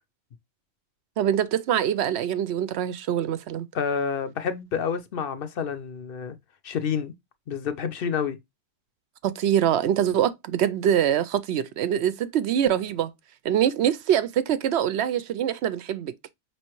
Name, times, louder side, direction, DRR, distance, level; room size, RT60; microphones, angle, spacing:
voice 1, 1.2-3.7 9.2-13.1 13.4-16.3, right 10 dB, 75° right, 0.8 m, -24 dB
voice 2, 3.7-6.4 6.6-7.1 7.5-8.4, left 6 dB, 60° left, 0.8 m, -28 dB
5.4 x 3.1 x 3.0 m
omnidirectional pair, 1.1 m